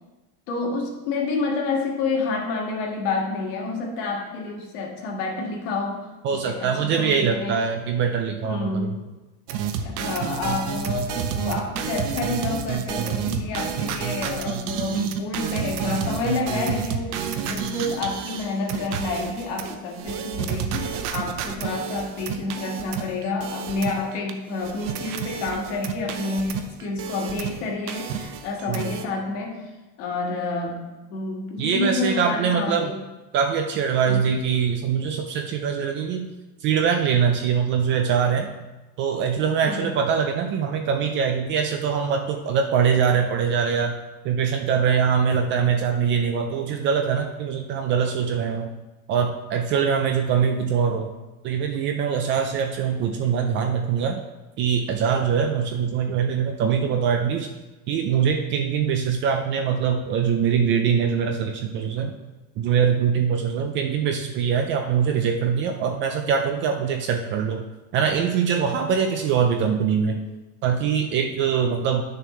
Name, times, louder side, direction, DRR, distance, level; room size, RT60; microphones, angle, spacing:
voice 1, 0.5-7.6 8.4-8.9 10.0-29.7 30.0-33.0 34.1-34.3 39.6-39.9, left 3 dB, 60° left, 0 dB, 1.9 m, -29 dB
voice 2, 6.2-9.0 28.7-28.9 31.6-32.9 33.3-36.3 36.6-38.5 39.0-43.9 44.2-48.7 49.1-51.1 51.4-54.2 54.6-57.5 57.9-62.1 62.6-67.6 67.9-70.2 70.6-72.0, right 7 dB, 30° right, 4 dB, 0.4 m, -23 dB
sound 1, 9.5-24.3 24.5-27.6 27.9-29.0, right 7 dB, 50° right, 0.8 m, -30 dB
10.0 x 6.6 x 3.2 m, 1.1 s
cardioid pair, 160°, 42 cm